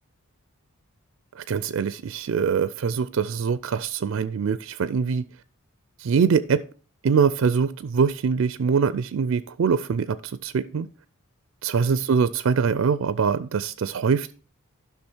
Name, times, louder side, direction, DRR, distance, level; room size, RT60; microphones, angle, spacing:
voice 1, 1.4-5.3 6.0-6.6 7.0-10.9 11.6-14.3, right 6 dB, 60° right, 0.4 m, -23 dB
12.0 x 5.9 x 4.5 m
head